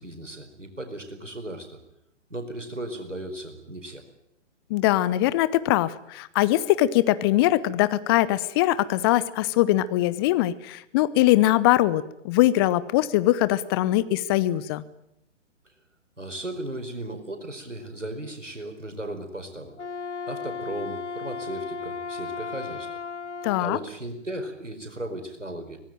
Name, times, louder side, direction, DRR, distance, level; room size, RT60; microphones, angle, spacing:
voice 1, 0.0-1.8 2.3-4.0 15.6-15.7 16.2-19.7 20.3-23.0 23.6-25.8, right 1 dB, 90° right, 5 dB, 4.7 m, -36 dB
voice 2, 4.7-14.8 23.4-23.8, left 15 dB, 20° left, 16 dB, 0.8 m, -22 dB
Wind instrument woodwind instrument, 19.7-23.8, left 5 dB, 70° left, 1.1 m, -35 dB
25.0 x 18.0 x 9.2 m, 0.81 s
figure-of-eight pair, 130°, 36 cm